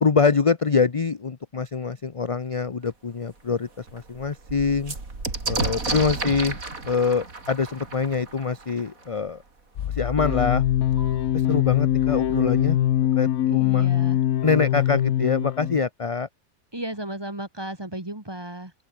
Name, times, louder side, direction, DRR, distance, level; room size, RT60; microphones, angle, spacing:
voice 1, 0.0-4.9 5.5-6.6 6.9-9.4 10.0-10.6 11.5-12.8 13.2-13.9 14.4-16.3, left 5 dB, 30° left, 0.7 m, -24 dB
sound 1, 2.8-2.9 3.4-3.5 3.7-9.3 10.3-10.4 10.6-11.2, right 3 dB, 70° right, 4.1 m, -32 dB
sound 2, 9.8-13.3 13.7-13.8, left 10 dB, 60° left, 1.0 m, -34 dB
sound 3, 10.2-15.9, left 12 dB, 85° left, 1.2 m, -23 dB
voice 2, 13.5-14.2 16.7-18.7, right 1 dB, 15° right, 2.6 m, -34 dB
open air
omnidirectional pair, 1.5 m